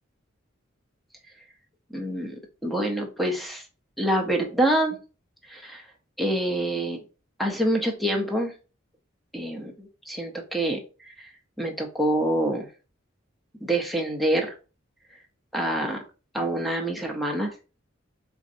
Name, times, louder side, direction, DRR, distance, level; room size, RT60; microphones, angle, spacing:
voice 1, 1.9-2.4 2.6-3.6 4.0-5.0 5.5-5.8 6.2-7.0 7.4-8.5 9.3-10.8 11.2-11.3 11.6-12.7 13.6-14.5 15.5-16.0 16.3-17.5, right 1 dB, ahead, 1 dB, 0.5 m, -26 dB
4.0 x 2.5 x 2.6 m, 0.34 s
head